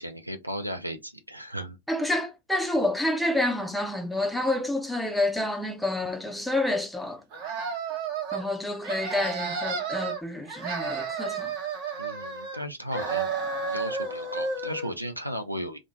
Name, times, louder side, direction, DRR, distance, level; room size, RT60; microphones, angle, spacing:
voice 1, 0.0-1.8 12.0-13.3 13.6-15.8, equal, 85° right, 0.5 m, -35 dB
voice 2, 1.9-7.2 8.3-11.5, left 1 dB, ahead, 0.5 m, -28 dB
sound 1, 7.3-8.5 8.8-10.2 10.5-12.6 12.9-14.9, right 5 dB, 45° right, 0.8 m, -32 dB
2.4 x 2.1 x 2.9 m
figure-of-eight pair, 90°, 0 cm